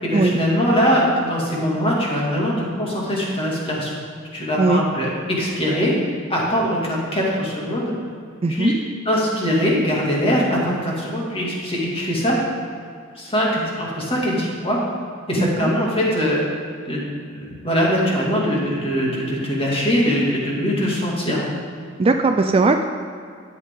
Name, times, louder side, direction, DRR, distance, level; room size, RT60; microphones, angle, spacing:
voice 1, 0.0-3.9 4.3-6.0 6.3-7.9 8.5-8.7 9.1-12.4 13.2-14.8 15.3-16.4 16.9-21.5, equal, 25° left, -4 dB, 2.2 m, -22 dB
voice 2, 8.4-8.7 15.4-15.7 22.0-22.8, right 3 dB, 25° right, 6 dB, 0.4 m, -18 dB
12.5 x 8.2 x 3.7 m, 2.2 s
head